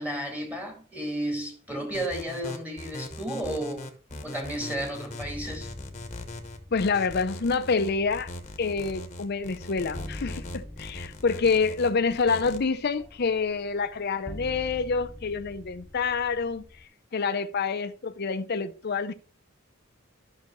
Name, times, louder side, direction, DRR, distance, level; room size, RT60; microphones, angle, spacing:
voice 1, 0.0-3.9 4.2-5.7, right 1 dB, 10° right, 2.1 m, -33 dB
sound 1, 1.9-12.6, left 2 dB, 35° left, 1.0 m, -40 dB
sound 2, 5.2-16.8, left 1 dB, 10° left, 0.3 m, -45 dB
voice 2, 6.7-8.3 8.6-16.7 17.1-19.1, left 4 dB, 50° left, 0.6 m, -27 dB
12.5 x 5.7 x 3.1 m
head